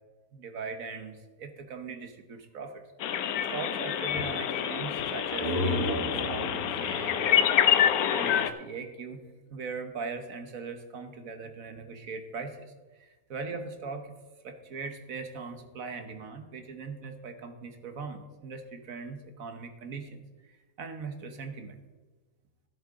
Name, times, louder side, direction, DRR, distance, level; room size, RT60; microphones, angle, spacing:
voice 1, 0.3-6.5 6.8-7.8 8.1-9.2 9.5-12.7 13.0-14.1 14.4-21.8, right 4 dB, 70° right, 7 dB, 1.5 m, -40 dB
sound 1, 3.0-8.5, left 10 dB, 85° left, 1.1 m, -27 dB
sound 2, 5.1-8.8, equal, 50° right, 1.9 m, -34 dB
13.0 x 11.5 x 3.7 m, 1.3 s
omnidirectional pair, 1.5 m